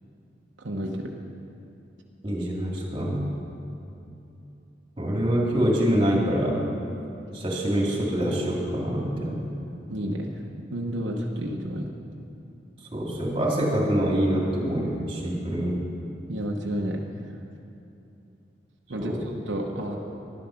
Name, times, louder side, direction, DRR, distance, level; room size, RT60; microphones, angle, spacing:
voice 1, 0.6-1.1 9.9-10.3 10.7-11.9 16.3-17.2 18.9-20.0, equal, 80° right, 0 dB, 1.0 m, -31 dB
voice 2, 2.2-3.3 5.0-6.6 7.3-9.4 12.9-15.8 19.0-19.2 19.9-20.0, equal, 30° right, -2 dB, 2.4 m, -25 dB
12.0 x 11.5 x 5.8 m, 2.8 s
head